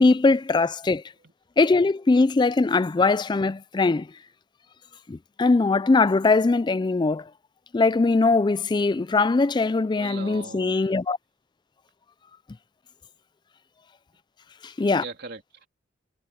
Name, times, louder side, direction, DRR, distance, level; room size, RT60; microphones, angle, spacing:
voice 1, 0.0-1.0 1.6-4.1 5.1-7.3 7.7-11.2 14.6-15.0, left 3 dB, 20° left, 0.3 m, -21 dB
voice 2, 9.9-10.8 15.0-15.7, right 3 dB, 55° right, 3.3 m, -40 dB
head